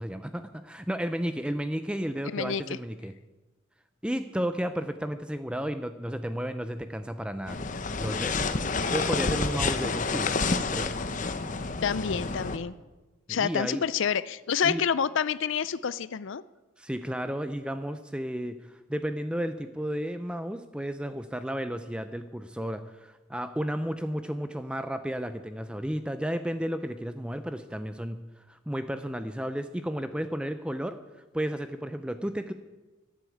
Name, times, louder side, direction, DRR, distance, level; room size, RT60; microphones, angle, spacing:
voice 1, 0.0-3.1 4.0-7.6 8.0-8.5 8.9-10.9 13.3-13.9 14.6-14.8 16.8-28.2 28.5-31.0 31.3-32.5, equal, 5° right, 10 dB, 0.5 m, -33 dB
voice 2, 2.3-2.6 11.8-12.8 13.3-16.4, left 7 dB, 65° left, 17 dB, 0.5 m, -28 dB
sound 1, 7.5-12.6, left 4 dB, 35° left, 0.8 m, -29 dB
12.0 x 11.5 x 8.5 m, 1.2 s
head